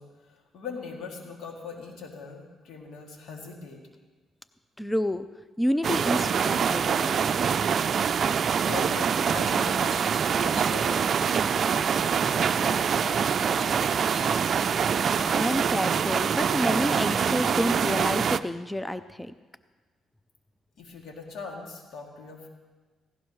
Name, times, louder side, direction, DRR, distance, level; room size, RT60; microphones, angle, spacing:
voice 1, 0.0-3.8 8.7-9.9 10.3-14.2 20.8-22.5, left 4 dB, 75° left, 0 dB, 2.6 m, -41 dB
voice 2, 4.8-5.3 5.6-7.4 15.0-19.3, equal, 10° left, 12 dB, 0.4 m, -29 dB
sound 1, 5.8-18.4, right 7 dB, 55° right, 0.4 m, -25 dB
sound 2, 8.5-9.0 9.3-14.8 15.1-15.6 15.9-17.1, left 3 dB, 45° left, 1.8 m, -50 dB
17.5 x 16.5 x 3.2 m, 1.3 s
cardioid pair, 90°, 0 cm